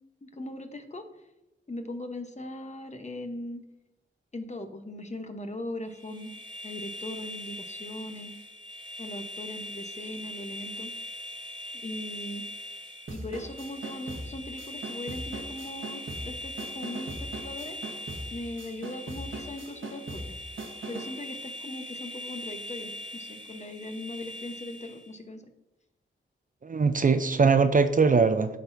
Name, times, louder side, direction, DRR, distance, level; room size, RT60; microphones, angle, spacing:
voice 1, 0.2-1.1 1.7-3.6 4.3-6.3 6.6-8.3 9.0-10.9 11.8-12.5 13.1-17.8 18.3-20.4 20.9-25.4, left 1 dB, 35° left, 6 dB, 1.0 m, -39 dB
sound 1, 5.9-25.1, left 1 dB, 20° right, 1.3 m, -41 dB
sound 2, 13.1-21.2, right 2 dB, 75° right, 1.4 m, -40 dB
voice 2, 26.6-28.6, right 5 dB, 40° right, 10 dB, 0.5 m, -21 dB
11.5 x 4.0 x 2.7 m, 0.93 s
cardioid pair, 50°, 21 cm